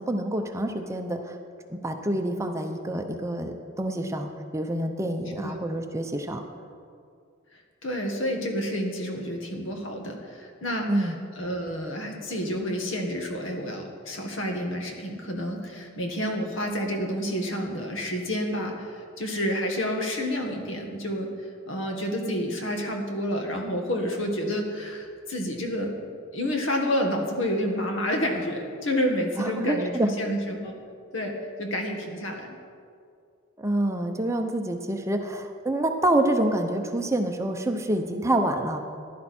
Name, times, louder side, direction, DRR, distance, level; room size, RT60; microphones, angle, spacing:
voice 1, 0.0-1.4 1.7-6.4 10.9-11.2 29.4-30.1 33.6-38.8, right 1 dB, 15° right, 4 dB, 0.7 m, -27 dB
voice 2, 7.5-25.9 26.3-30.7 31.1-32.6, equal, 65° left, 2 dB, 1.8 m, -29 dB
15.0 x 11.0 x 4.3 m, 2.2 s
head